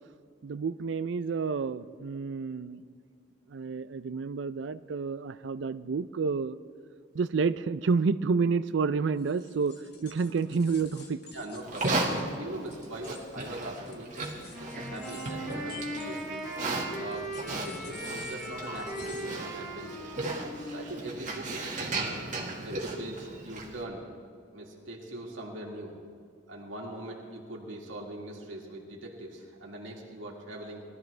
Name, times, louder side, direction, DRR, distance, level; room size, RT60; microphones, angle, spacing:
voice 1, 0.4-2.8 3.5-6.6 7.1-9.8 10.0-11.2, right 5 dB, 65° right, 14 dB, 0.4 m, -29 dB
sound 1, 9.2-16.6 17.1-19.5, left 4 dB, 60° left, 1.5 m, -50 dB
voice 2, 11.3-16.5 17.0-17.3 17.7-20.1 20.7-22.0 22.6-24.0 24.5-25.9 26.5-30.8, right 1 dB, 90° right, -2 dB, 2.1 m, -41 dB
Livestock farm animals working animals, 11.6-23.8, right 2 dB, 40° right, 1.7 m, -36 dB
Wind instrument woodwind instrument, 14.5-22.4, right 1 dB, ahead, 3.6 m, -39 dB
20.0 x 13.0 x 3.3 m, 2.2 s
head